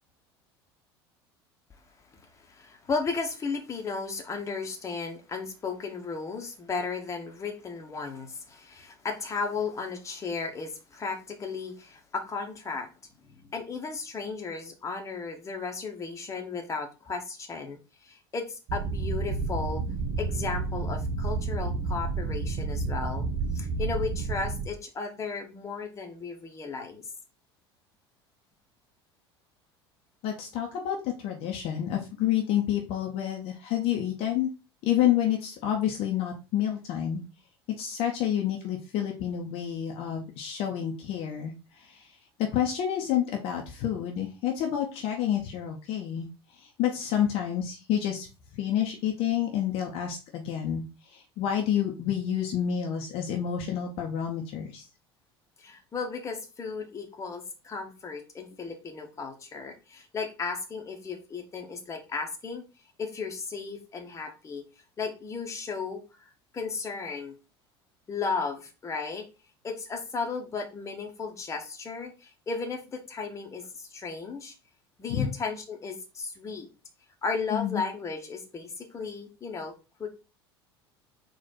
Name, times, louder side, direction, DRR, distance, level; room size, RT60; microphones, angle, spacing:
voice 1, 2.3-12.9 13.2-19.8 20.2-23.3 23.5-27.0 55.6-62.6 63.0-64.6 65.0-67.4 68.1-69.2 69.6-74.5 75.0-76.7 77.2-79.7 80.0-80.1, left 4 dB, 20° left, 3 dB, 1.0 m, -35 dB
sound 1, 18.7-24.7, right 4 dB, 50° right, 0.9 m, -30 dB
voice 2, 30.2-34.5 34.8-37.2 37.8-42.1 42.5-46.3 46.5-48.3 48.5-54.9 75.1-75.3 77.5-77.8, left 10 dB, 45° left, 1 dB, 0.7 m, -29 dB
4.1 x 2.5 x 4.1 m, 0.30 s
figure-of-eight pair, 70°, 13 cm